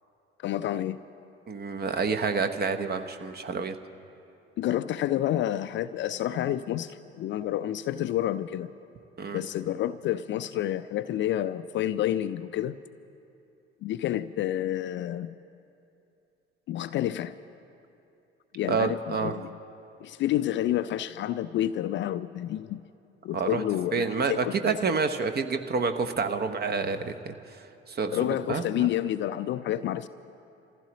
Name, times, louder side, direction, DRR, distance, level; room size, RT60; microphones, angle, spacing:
voice 1, 0.4-1.0 4.6-8.7 9.3-12.8 13.8-15.4 16.7-17.3 18.5-19.5 20.0-22.8 23.2-24.8 28.1-30.1, left 12 dB, 40° left, 13 dB, 0.4 m, -29 dB
voice 2, 1.5-3.8 9.2-9.4 18.7-19.3 23.3-23.6 23.9-27.3 27.9-28.9, right 5 dB, 30° right, 8 dB, 0.9 m, -28 dB
28.0 x 15.0 x 3.0 m, 2.7 s
figure-of-eight pair, 55°, 31 cm